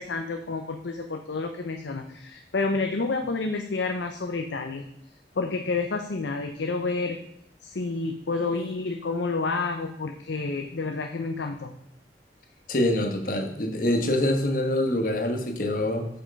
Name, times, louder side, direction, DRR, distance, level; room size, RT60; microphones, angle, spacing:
voice 1, 0.0-4.9 5.4-7.2 7.6-11.8, left 3 dB, 85° left, 4 dB, 0.7 m, -29 dB
voice 2, 12.7-16.1, left 1 dB, 50° left, 5 dB, 1.3 m, -25 dB
8.4 x 5.9 x 5.2 m, 0.72 s
head